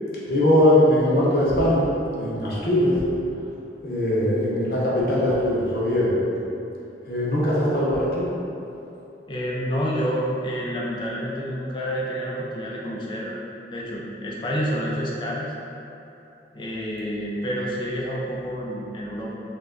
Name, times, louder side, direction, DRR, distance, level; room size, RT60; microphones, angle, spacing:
voice 1, 0.3-1.9 2.1-3.0 3.8-6.1 7.1-8.2, left 1 dB, 60° left, -6 dB, 0.7 m, -20 dB
voice 2, 9.3-13.4 13.7-15.5 16.5-19.3, equal, 25° left, -4 dB, 0.3 m, -28 dB
3.0 x 2.2 x 3.6 m, 2.8 s
head